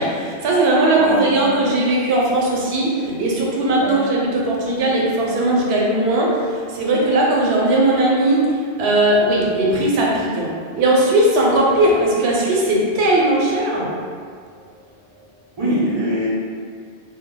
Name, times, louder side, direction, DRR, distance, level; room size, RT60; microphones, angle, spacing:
voice 1, 0.0-13.9, right 1 dB, 75° right, -3 dB, 0.9 m, -18 dB
voice 2, 0.9-1.5 3.8-4.0 15.6-16.3, equal, 30° right, -7 dB, 0.5 m, -23 dB
2.2 x 2.0 x 3.7 m, 2.2 s
omnidirectional pair, 1.1 m